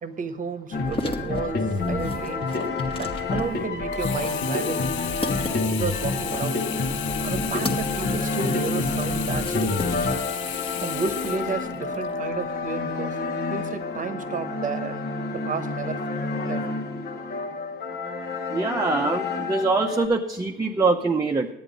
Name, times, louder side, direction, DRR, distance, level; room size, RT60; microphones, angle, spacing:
voice 1, 0.0-2.5 3.0-4.8 5.7-6.6 7.2-10.2 10.8-13.2 13.5-16.0 16.4-16.6, right 5 dB, 40° right, 9 dB, 1.0 m, -32 dB
sound 1, 0.7-20.1, left 3 dB, 55° left, 1.2 m, -28 dB
sound 2, 0.7-10.4 10.7-11.6, left 1 dB, 25° left, 1.4 m, -37 dB
Sink (filling or washing), 3.9-12.2 12.7-12.8, left 11 dB, 70° left, 0.5 m, -34 dB
voice 2, 18.5-21.5, right 3 dB, 20° right, 2 dB, 0.7 m, -23 dB
10.5 x 8.7 x 5.2 m, 0.89 s
cardioid pair, 90°, 20 cm